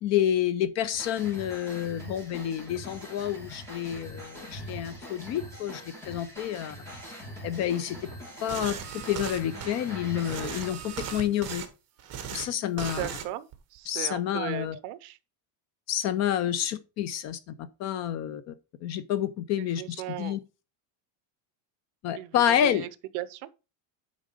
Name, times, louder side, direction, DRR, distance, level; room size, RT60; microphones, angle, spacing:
voice 1, 0.0-6.8 7.4-8.0 8.4-8.7 9.1-11.6 12.3-13.1 13.9-14.8 15.9-17.4 17.8-18.5 18.8-20.4 22.0-22.9, left 10 dB, 35° left, 0.4 m, -29 dB
sound 1, 0.9-10.7, equal, 5° left, 2.7 m, -43 dB
sound 2, 8.5-9.7 10.2-11.7 12.0-12.4 12.8-13.2 13.5-13.8, right 8 dB, 30° right, 1.3 m, -37 dB
voice 2, 13.0-13.5 13.7-15.2 19.6-20.4 22.1-22.9 23.1-23.5, right 15 dB, 55° right, 0.7 m, -37 dB
9.1 x 3.8 x 4.9 m
cardioid pair, 170°, 47 cm